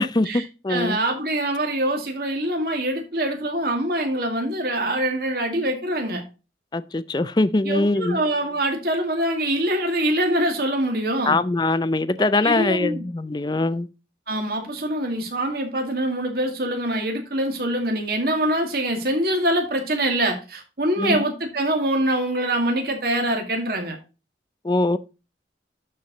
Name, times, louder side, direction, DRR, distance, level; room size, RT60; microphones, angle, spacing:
voice 1, 0.0-1.0 6.7-8.2 11.3-13.9 21.0-21.2 24.6-25.0, left 2 dB, 25° left, 0.5 m, -22 dB
voice 2, 0.7-6.2 7.6-11.4 12.4-13.0 14.3-24.0, right 1 dB, 55° right, 2.2 m, -24 dB
11.5 x 4.8 x 4.0 m
head